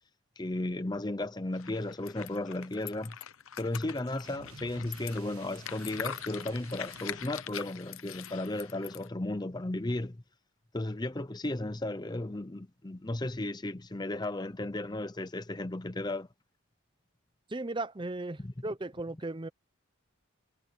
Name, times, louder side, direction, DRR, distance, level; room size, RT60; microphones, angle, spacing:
voice 1, 0.4-3.2 3.6-10.2 10.7-16.3 18.4-18.5, left 2 dB, 20° left, 0.6 m, -34 dB
sound 1, 1.5-9.1, left 9 dB, 70° left, 0.8 m, -43 dB
sound 2, 4.2-7.3, right 5 dB, 85° right, 1.2 m, -53 dB
voice 2, 17.5-19.5, right 2 dB, 20° right, 0.6 m, -36 dB
head